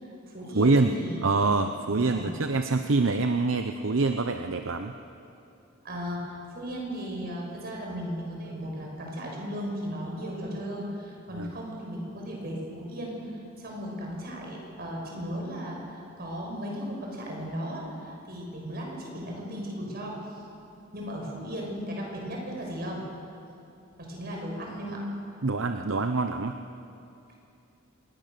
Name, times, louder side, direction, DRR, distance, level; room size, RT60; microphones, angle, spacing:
voice 1, 0.0-1.3 1.8-2.3 5.8-13.3 13.6-20.2 20.9-23.0 24.0-25.0, equal, 50° right, -1 dB, 6.5 m, -36 dB
voice 2, 0.5-0.9 1.2-4.9 11.3-11.5 25.4-26.6, right 3 dB, 75° right, 7 dB, 0.8 m, -25 dB
26.5 x 21.0 x 6.8 m, 2.7 s
head